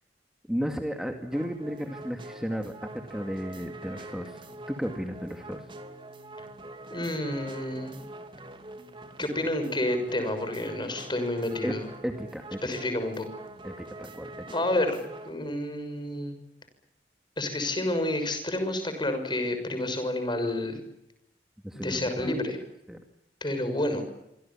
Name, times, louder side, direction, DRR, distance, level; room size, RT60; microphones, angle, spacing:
voice 1, 0.5-5.7 11.6-11.8 12.0-12.6 13.6-14.5 21.6-22.3 22.9-23.0, equal, 5° right, 4 dB, 2.2 m, -34 dB
sound 1, 1.3-15.3, right 2 dB, 30° right, 2.8 m, -44 dB
voice 2, 6.9-8.0 9.2-11.9 12.6-13.3 14.5-15.0 15.2-16.3 17.4-20.8 21.7-22.6 23.4-24.0, left 1 dB, 25° left, 8 dB, 6.3 m, -29 dB
26.5 x 25.5 x 7.3 m, 0.85 s
head